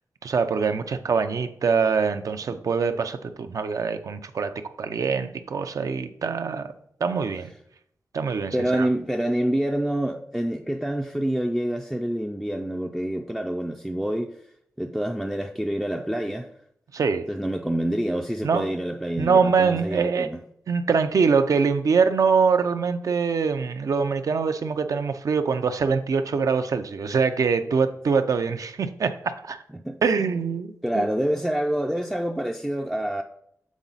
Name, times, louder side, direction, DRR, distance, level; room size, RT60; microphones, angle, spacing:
voice 1, 0.2-4.5 4.8-6.7 7.0-7.5 8.1-8.9 16.9-17.3 18.4-18.7 19.2-20.3 20.7-29.6 30.0-31.0, right 5 dB, 65° right, 0.5 m, -24 dB
voice 2, 8.5-14.3 14.8-16.5 17.3-20.4 29.7-30.0 30.3-30.4 30.8-33.2, right 1 dB, 5° right, 0.4 m, -27 dB
7.2 x 4.0 x 3.9 m
wide cardioid pair, 135°, 6 cm